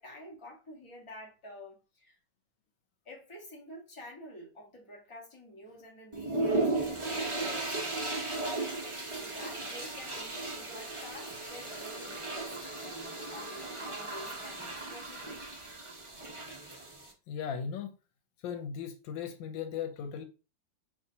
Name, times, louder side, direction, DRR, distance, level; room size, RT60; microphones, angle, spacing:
voice 1, 0.0-2.2 3.0-7.9 8.3-8.4 9.1-12.8 13.3-15.5, left 1 dB, 20° left, 1.2 m, -49 dB
sound 1, 6.1-17.1, right 2 dB, 30° right, 0.5 m, -36 dB
voice 2, 17.3-18.0 18.4-20.2, left 7 dB, 85° left, 1.5 m, -37 dB
4.8 x 3.2 x 2.7 m
omnidirectional pair, 2.0 m